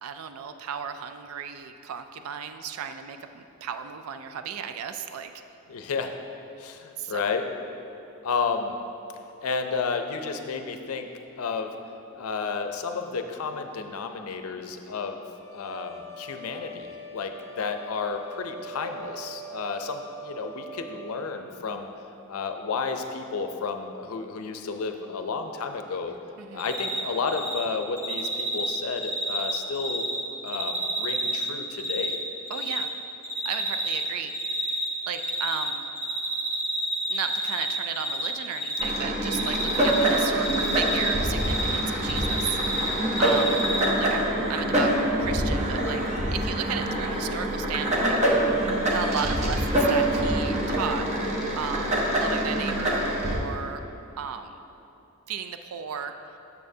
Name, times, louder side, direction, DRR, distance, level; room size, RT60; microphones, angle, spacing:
voice 1, 0.0-5.3 7.0-7.2 26.4-26.7 32.5-32.9 33.4-34.3 35.1-35.8 37.1-42.6 43.2-43.7 44.0-44.9 45.2-46.0 46.3-48.6 48.9-51.1 51.6-53.8 54.2-54.6 55.3-56.1, right 7 dB, 80° right, 8 dB, 0.3 m, -35 dB
voice 2, 5.7-6.2 6.6-7.5 8.2-8.7 9.4-11.1 11.4-11.8 12.1-15.2 15.5-21.9 22.3-26.2 26.5-30.1 30.4-32.2, left 5 dB, 85° left, 6 dB, 0.5 m, -32 dB
sound 1, 15.3-21.4, right 2 dB, 10° left, 0.7 m, -42 dB
Cricket, 26.6-27.0 27.3-27.6 28.0-30.2 30.5-32.1 32.5-32.8 33.2-34.0 34.3-35.7 36.0-38.3 38.5-38.9 39.2-41.8 42.0-43.9, right 1 dB, 15° right, 1.3 m, -29 dB
sound 2, 38.8-53.4, right 1 dB, 35° right, 0.9 m, -25 dB
8.6 x 6.7 x 2.7 m, 2.9 s
head